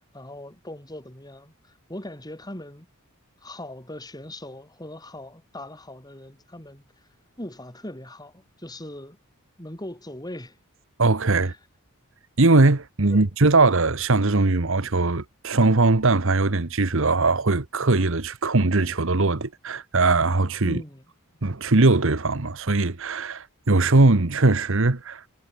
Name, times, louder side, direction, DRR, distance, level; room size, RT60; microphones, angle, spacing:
voice 1, 0.1-2.9 3.4-6.8 7.4-9.2 9.6-10.6 11.4-11.5 13.1-13.3 20.6-21.0, left 1 dB, 20° left, 4.8 m, -39 dB
voice 2, 11.0-11.5 12.4-20.8 21.4-25.2, right 3 dB, 60° right, 1.3 m, -20 dB
head